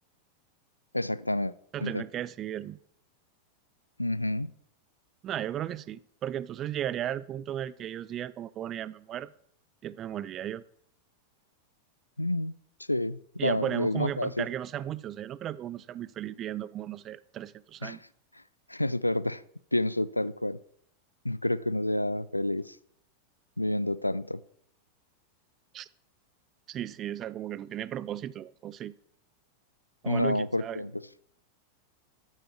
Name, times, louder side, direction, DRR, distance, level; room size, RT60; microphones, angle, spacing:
voice 1, 0.9-1.5 1.8-2.0 4.0-4.5 12.2-12.5 12.9-14.5 17.8-18.0 18.7-19.4 19.7-20.6 21.2-22.8 23.6-24.4 30.1-31.0, left 1 dB, 85° left, 0.3 m, -29 dB
voice 2, 1.7-2.8 5.2-9.3 9.8-10.6 13.4-18.0 25.7-25.9 26.7-28.9 30.0-30.8, right 11 dB, 30° right, 0.4 m, -35 dB
13.0 x 8.9 x 4.6 m
figure-of-eight pair, 90°, 0 cm